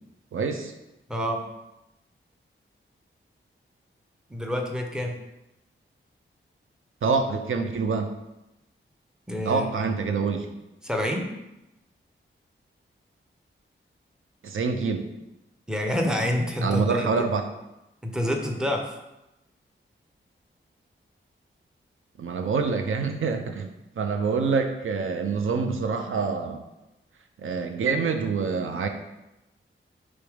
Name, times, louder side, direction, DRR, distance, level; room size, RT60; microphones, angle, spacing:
voice 1, 0.3-0.7 7.0-8.1 9.4-10.5 14.4-15.1 16.6-17.4 22.2-26.7 27.4-28.9, right 5 dB, 75° right, 5 dB, 0.5 m, -26 dB
voice 2, 1.1-1.4 4.3-5.2 9.3-9.9 10.8-11.3 15.7-17.3 18.0-19.0, left 1 dB, 5° right, 2 dB, 0.5 m, -27 dB
3.4 x 3.1 x 4.7 m, 0.94 s
wide cardioid pair, 140°, 21 cm